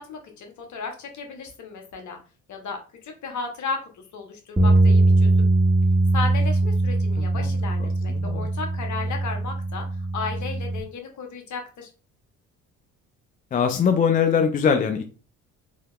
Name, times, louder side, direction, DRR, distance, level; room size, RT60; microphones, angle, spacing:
voice 1, 0.0-2.2 2.5-5.5 6.1-11.9, left 4 dB, 50° left, 3 dB, 1.0 m, -35 dB
sound 1, 4.6-10.8, right 2 dB, 10° right, 0.7 m, -21 dB
voice 2, 7.8-8.5 13.5-15.0, left 7 dB, 25° left, 7 dB, 0.3 m, -22 dB
3.2 x 2.8 x 2.3 m, 0.35 s
hypercardioid pair, 55°, 39 cm